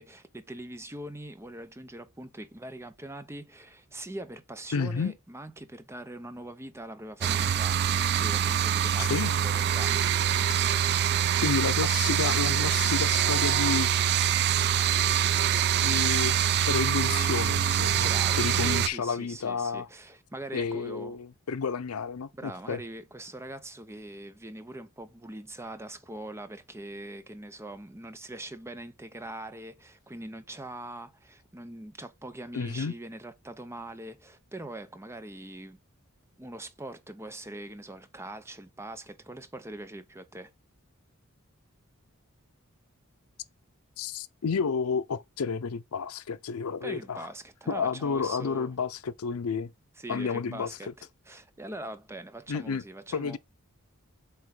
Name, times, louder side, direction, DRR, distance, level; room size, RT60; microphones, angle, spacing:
voice 1, 0.0-7.8 8.1-10.0 18.0-21.2 22.4-35.8 36.4-40.5 46.8-48.7 50.0-53.4, right 1 dB, 10° right, 0.7 m, -42 dB
voice 2, 4.7-5.1 9.0-9.3 11.4-13.9 15.8-16.4 16.6-18.1 18.4-19.9 20.5-22.8 32.5-32.9 44.0-47.3 47.7-49.7 50.1-50.8 52.5-52.8 53.1-53.4, left 5 dB, 85° left, 0.5 m, -31 dB
sound 1, 7.2-18.9, right 9 dB, 50° right, 0.4 m, -25 dB
8.1 x 3.0 x 4.8 m
head